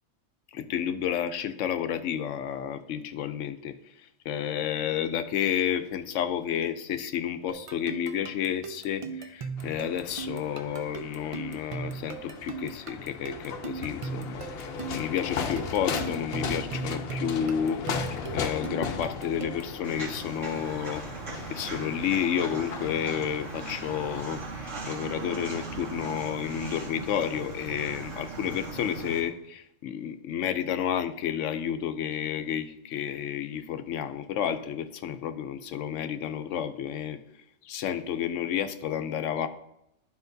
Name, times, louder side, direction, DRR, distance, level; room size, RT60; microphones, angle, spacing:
voice 1, 0.5-14.4 14.9-21.0 21.5-37.2 37.6-39.5, left 9 dB, 85° left, 10 dB, 0.9 m, -31 dB
sound 1, 7.5-19.8, right 6 dB, 50° right, 0.4 m, -38 dB
sound 2, 9.6-24.2, left 6 dB, 60° left, 0.8 m, -37 dB
Walk footsteps, 19.8-29.2, right 3 dB, 80° right, 2.2 m, -38 dB
11.5 x 5.0 x 2.7 m, 0.82 s
omnidirectional pair, 1.2 m